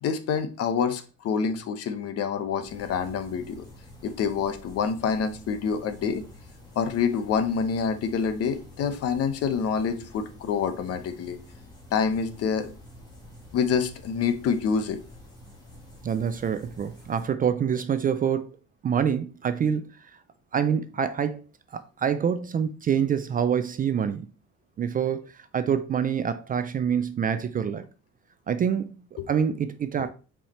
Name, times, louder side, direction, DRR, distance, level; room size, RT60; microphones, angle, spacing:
voice 1, 0.0-3.6 4.0-6.2 6.8-11.4 11.9-12.7 13.5-15.0 29.2-29.3, left 6 dB, 50° left, 1.0 m, -27 dB
sound 1, 2.6-17.3, left 1 dB, 15° left, 2.0 m, -48 dB
voice 2, 16.0-18.5 18.8-19.9 20.5-21.4 21.7-24.3 24.8-27.8 28.5-29.0 29.3-30.1, right 8 dB, 30° right, 0.4 m, -26 dB
5.9 x 4.9 x 4.2 m
cardioid pair, 160°, 30 cm